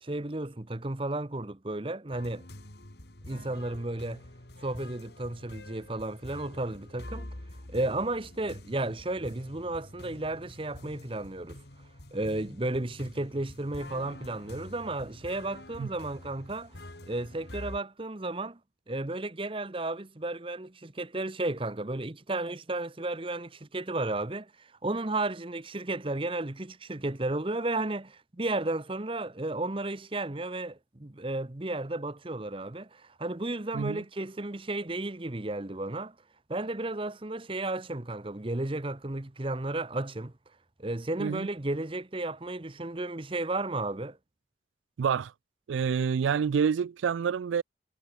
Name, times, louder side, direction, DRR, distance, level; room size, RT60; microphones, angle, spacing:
voice 1, 0.0-2.4 3.2-4.2 4.6-7.3 7.7-11.6 12.1-16.7 17.1-18.6 18.9-36.1 36.5-40.3 40.8-44.2, right 2 dB, 30° right, 0.9 m, -33 dB
sound 1, 2.1-17.8, left 1 dB, 60° left, 2.7 m, -47 dB
voice 2, 45.0-45.3 45.7-47.6, right 6 dB, 85° right, 0.4 m, -27 dB
head